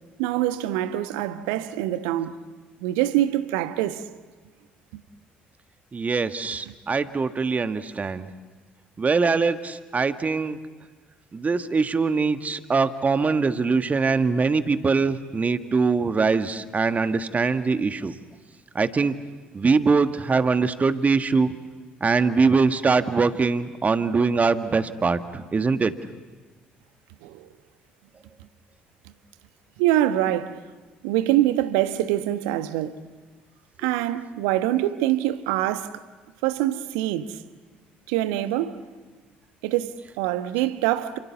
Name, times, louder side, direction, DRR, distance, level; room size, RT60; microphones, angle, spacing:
voice 1, 0.2-2.4 2.8-4.1 4.9-5.0 6.7-6.8 27.2-27.5 29.8-30.7 31.0-33.0 33.8-36.0 36.4-37.4 38.1-38.8 39.6-41.2, right 13 dB, 65° right, 1.2 m, -25 dB
voice 2, 5.9-8.3 9.0-10.6 11.3-18.2 18.7-19.2 19.5-21.5 22.0-25.9, right 4 dB, 30° right, 1.6 m, -22 dB
30.0 x 27.5 x 7.3 m
figure-of-eight pair, 50°, 5 cm